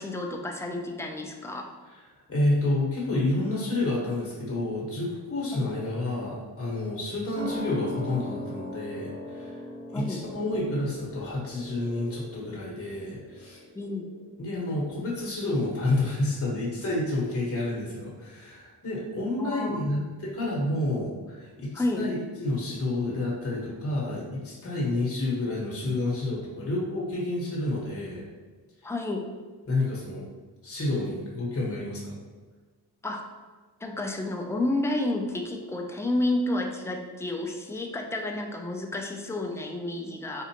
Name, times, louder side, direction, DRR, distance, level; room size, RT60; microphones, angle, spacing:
voice 1, 0.0-1.7 5.5-5.7 9.9-10.2 13.7-14.1 19.4-20.0 21.7-22.1 28.8-29.3 33.0-33.2 33.8-40.4, left 2 dB, 5° left, 1 dB, 0.4 m, -30 dB
voice 2, 2.3-9.6 9.9-13.6 14.4-28.2 28.8-28.9 29.7-30.2 30.6-32.1, left 2 dB, 35° left, -5 dB, 1.3 m, -29 dB
sound 1, 7.3-14.4 14.7-14.8, left 1 dB, 80° right, 0.8 m, -39 dB
4.3 x 2.4 x 2.9 m, 1.5 s
cardioid pair, 75°, 42 cm